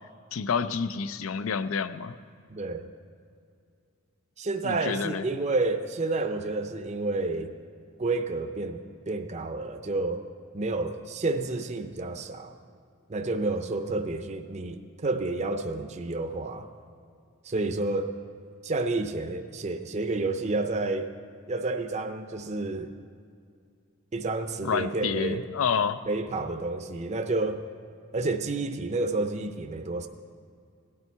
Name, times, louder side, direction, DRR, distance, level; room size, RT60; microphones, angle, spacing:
voice 1, 0.3-2.2 4.6-5.2 24.6-26.0, left 6 dB, 80° left, 12 dB, 0.5 m, -29 dB
voice 2, 2.5-2.9 4.4-7.5 8.0-10.3 10.5-12.5 13.1-16.7 17.4-18.1 18.6-21.1 21.5-22.9 24.1-25.4 26.1-27.6 28.1-30.1, right 2 dB, 35° right, 6 dB, 0.6 m, -30 dB
17.5 x 11.0 x 4.5 m, 2.4 s
head